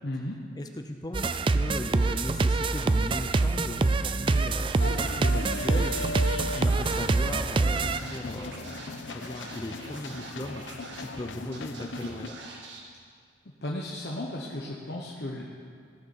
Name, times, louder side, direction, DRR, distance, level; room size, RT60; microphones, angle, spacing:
voice 1, 0.0-0.4 13.6-15.4, left 1 dB, 60° left, -2 dB, 1.1 m, -34 dB
voice 2, 0.6-6.0 6.3-10.6 10.9-12.4, left 1 dB, 20° left, 5 dB, 0.6 m, -38 dB
sound 1, 1.1-8.0, right 3 dB, 25° right, 0.3 m, -25 dB
sound 2, 4.8-12.3, left 2 dB, 90° left, 0.8 m, -37 dB
Scratching (performance technique), 7.6-7.7 7.9-11.2 11.5-12.8, right 3 dB, 80° right, 2.0 m, -45 dB
17.0 x 6.9 x 7.1 m, 2.1 s
head